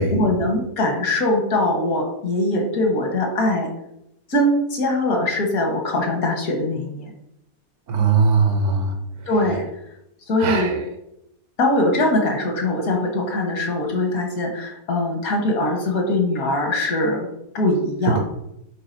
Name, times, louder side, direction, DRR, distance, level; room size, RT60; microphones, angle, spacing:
voice 1, 0.1-3.7 4.3-7.1 9.3-9.7 10.3-10.8 11.6-17.3 17.5-18.2, left 1 dB, 75° left, 1 dB, 1.7 m, -22 dB
voice 2, 7.9-9.0 10.4-10.7 18.1-18.2, right 4 dB, 65° right, 4 dB, 0.9 m, -19 dB
9.5 x 3.7 x 2.6 m, 0.82 s
omnidirectional pair, 1.5 m